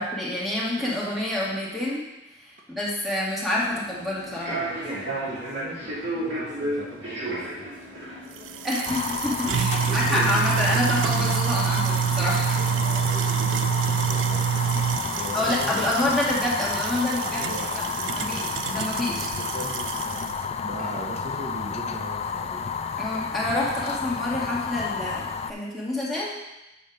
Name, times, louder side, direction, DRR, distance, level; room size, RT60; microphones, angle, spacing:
voice 1, 0.0-2.0 2.7-4.6 8.6-12.6 15.3-17.4 17.8-17.9 18.1-19.3 23.0-26.4, left 1 dB, ahead, -7 dB, 1.7 m, -27 dB
voice 2, 0.8-1.1 4.6-7.7 9.9-10.9 12.6-14.5 15.1-16.1 17.2-18.6 19.1-22.6, right 1 dB, 40° right, -3 dB, 1.0 m, -39 dB
Human voice / Subway metro underground, 3.5-9.0, right 1 dB, 65° right, 2.3 m, -33 dB
sound 1, 8.4-20.4, right 9 dB, 85° right, 0.4 m, -27 dB
Fire, 8.9-25.5, left 6 dB, 35° left, 0.3 m, -31 dB
7.4 x 4.3 x 5.2 m, 0.95 s
head